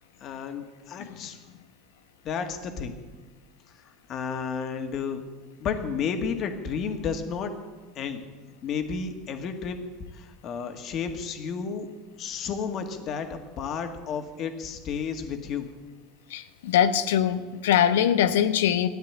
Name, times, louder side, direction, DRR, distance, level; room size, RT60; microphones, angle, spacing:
voice 1, 0.2-1.4 2.2-3.0 4.1-5.2 5.6-7.6 8.0-8.3 8.6-9.9 10.1-11.9 12.2-15.7, left 6 dB, 50° left, 6 dB, 1.9 m, -32 dB
voice 2, 16.3-18.9, left 9 dB, 80° left, 11 dB, 0.9 m, -22 dB
13.5 x 9.6 x 8.8 m, 1.3 s
hypercardioid pair, 90°, 0 cm